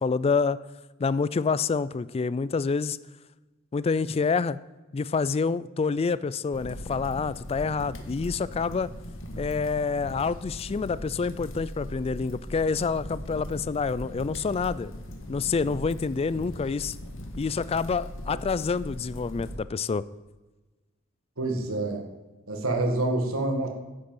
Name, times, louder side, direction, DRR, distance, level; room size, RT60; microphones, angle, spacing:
voice 1, 0.0-0.6 1.0-3.0 3.7-4.6 4.9-8.9 9.4-14.9 15.3-17.0 17.4-20.0, left 5 dB, 30° left, 17 dB, 0.3 m, -27 dB
sound 1, 6.5-19.6, equal, 65° left, 1.4 m, -39 dB
voice 2, 21.4-22.0 22.5-23.7, right 2 dB, 75° right, 3 dB, 1.8 m, -27 dB
10.0 x 7.9 x 5.5 m, 1.2 s
head